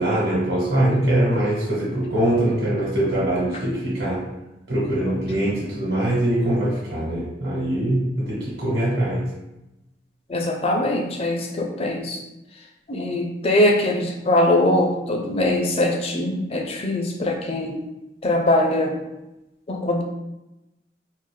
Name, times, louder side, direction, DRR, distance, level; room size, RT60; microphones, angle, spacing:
voice 1, 0.0-4.2 4.7-9.2, right 1 dB, 70° right, -7 dB, 1.2 m, -22 dB
voice 2, 10.3-12.2 12.9-17.8 18.2-19.0 19.7-20.0, left 1 dB, 35° left, 2 dB, 0.4 m, -22 dB
3.8 x 2.4 x 3.1 m, 0.95 s
head